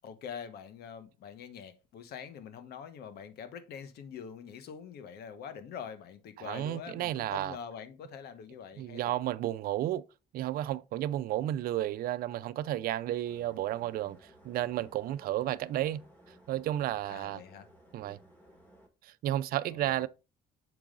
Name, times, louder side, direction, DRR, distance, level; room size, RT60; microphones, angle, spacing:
voice 1, 0.0-9.1 17.1-17.7 19.7-20.1, left 7 dB, 70° left, 1.2 m, -45 dB
voice 2, 6.4-7.6 8.8-10.0 10.3-14.2 14.4-16.0 16.5-17.4 17.9-18.2 19.0-20.1, right 13 dB, 60° right, 0.5 m, -32 dB
sound 1, 13.2-18.9, equal, 10° left, 2.2 m, -58 dB
7.2 x 4.7 x 3.8 m
cardioid pair, 110°, 17 cm